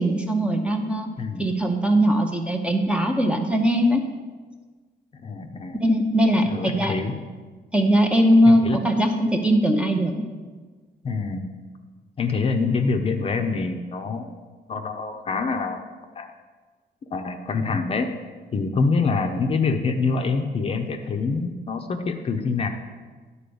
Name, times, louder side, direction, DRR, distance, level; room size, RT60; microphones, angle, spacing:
voice 1, 0.0-1.1 1.4-4.0 5.7-6.9 7.7-10.2, equal, 5° right, 4 dB, 0.6 m, -20 dB
voice 2, 5.2-5.8 6.5-7.1 8.5-8.8 11.0-11.5 12.2-14.3 14.7-15.8 16.2-16.3 17.1-18.1 18.5-22.7, left 4 dB, 35° left, 6 dB, 0.6 m, -25 dB
10.5 x 4.2 x 6.9 m, 1.4 s
cardioid pair, 175°, 17 cm